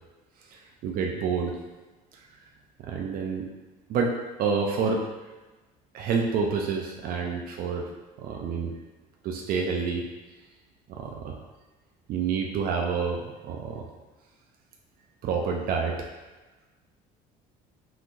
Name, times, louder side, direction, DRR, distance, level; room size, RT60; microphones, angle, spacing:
voice 1, 0.5-1.6 2.1-2.3 2.8-3.5 3.9-5.0 5.9-7.9 8.2-8.7 9.2-10.1 10.9-11.4 12.1-13.8 15.2-16.1, right 5 dB, 55° right, 1 dB, 0.5 m, -28 dB
5.8 x 3.0 x 2.6 m, 1.2 s
cardioid pair, 125°, 17 cm